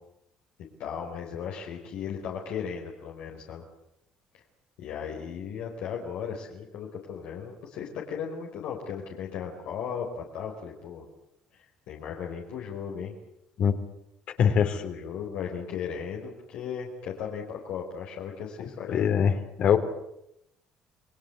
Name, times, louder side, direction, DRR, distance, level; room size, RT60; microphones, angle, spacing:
voice 1, 0.8-3.6 4.8-11.0 11.5-13.2 14.4-19.0, left 7 dB, 80° left, -1 dB, 4.7 m, -36 dB
voice 2, 14.4-14.7 18.9-19.3 19.6-19.8, left 8 dB, 60° left, 7 dB, 3.7 m, -21 dB
29.0 x 20.0 x 8.2 m, 0.80 s
cardioid pair, 90°, 2 cm